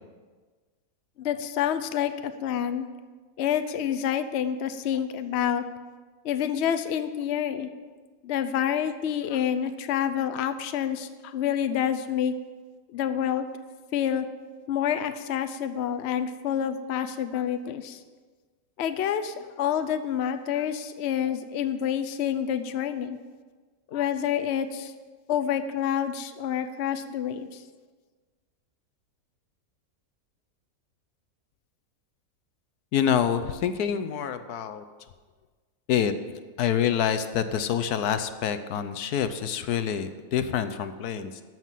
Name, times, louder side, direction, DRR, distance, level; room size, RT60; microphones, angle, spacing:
voice 1, 1.2-2.9 3.4-5.6 6.2-7.7 8.2-12.3 12.9-13.5 13.9-14.2 14.7-18.0 18.8-23.2 23.9-24.9 25.3-27.6, left 9 dB, 55° left, 9 dB, 0.8 m, -28 dB
voice 2, 32.9-34.8 35.9-36.1 36.6-41.4, left 8 dB, 85° left, 11 dB, 1.3 m, -26 dB
13.5 x 6.1 x 7.5 m, 1.4 s
omnidirectional pair, 1.6 m